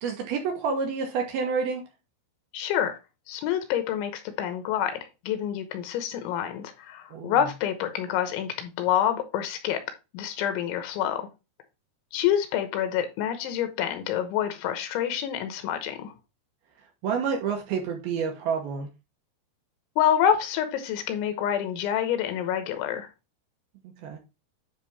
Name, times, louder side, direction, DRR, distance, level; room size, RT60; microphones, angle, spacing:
voice 1, 0.0-1.8 7.1-7.4 17.0-18.9 24.0-24.2, right 5 dB, 70° right, 2.6 m, -28 dB
voice 2, 2.5-3.0 3.3-9.8 10.1-11.3 12.1-16.1 20.0-23.1, left 10 dB, 85° left, 3.4 m, -27 dB
9.8 x 3.5 x 4.1 m
omnidirectional pair, 5.4 m